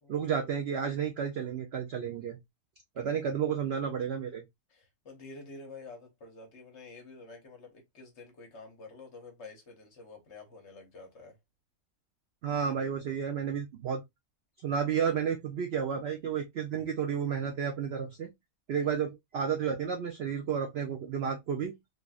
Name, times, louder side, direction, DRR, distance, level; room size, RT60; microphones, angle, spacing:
voice 1, 0.1-2.4 3.0-4.4 12.4-14.0 14.6-18.3 18.7-21.7, right 7 dB, 85° right, 0.5 m, -31 dB
voice 2, 4.7-11.4 18.7-19.0, left 3 dB, 50° left, 1.1 m, -49 dB
3.3 x 2.5 x 2.3 m
omnidirectional pair, 1.6 m